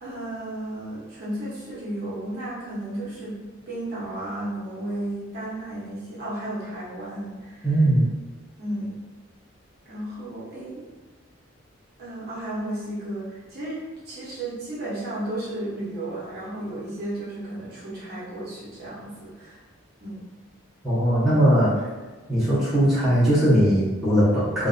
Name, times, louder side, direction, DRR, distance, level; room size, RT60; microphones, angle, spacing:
voice 1, 0.0-3.3 3.7-7.7 8.6-8.9 9.9-10.9 12.0-19.6 20.0-20.2, right 1 dB, 50° right, -8 dB, 0.6 m, -33 dB
voice 2, 7.6-8.1 20.8-21.8 22.3-24.7, right 1 dB, ahead, -12 dB, 0.9 m, -19 dB
2.5 x 2.0 x 2.4 m, 1.2 s
head